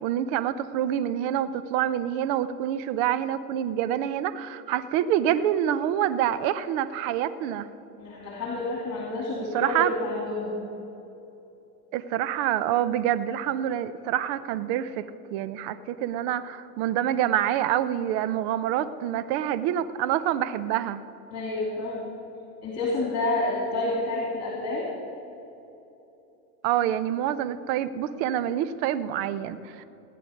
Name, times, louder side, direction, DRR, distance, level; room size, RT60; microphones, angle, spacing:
voice 1, 0.0-7.7 9.5-9.9 11.9-21.0 26.6-29.8, right 11 dB, 55° right, 14 dB, 0.7 m, -27 dB
voice 2, 8.0-10.6 21.3-22.1 22.6-24.9, left 2 dB, 30° left, -2 dB, 2.9 m, -29 dB
16.0 x 10.5 x 5.2 m, 2.9 s
hypercardioid pair, 110°, 49 cm